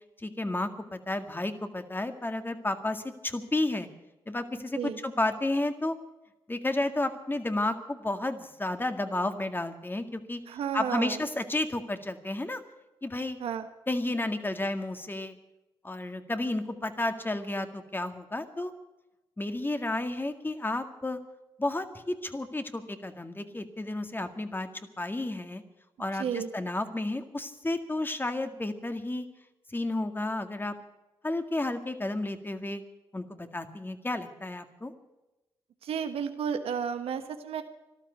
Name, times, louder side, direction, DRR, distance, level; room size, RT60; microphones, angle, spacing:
voice 1, 0.2-3.9 4.3-5.9 6.5-10.4 10.7-12.6 13.0-13.4 13.9-15.4 15.8-18.7 19.4-21.2 21.6-24.7 25.0-25.6 26.0-29.3 29.7-30.7 31.2-32.8 33.1-34.9, left 2 dB, 20° left, 8 dB, 2.0 m, -32 dB
voice 2, 10.5-11.2 13.4-13.7 26.2-26.5 35.8-37.6, right 7 dB, 80° right, 8 dB, 1.2 m, -32 dB
13.5 x 12.5 x 8.2 m, 1.0 s
supercardioid pair, 50°, 10 cm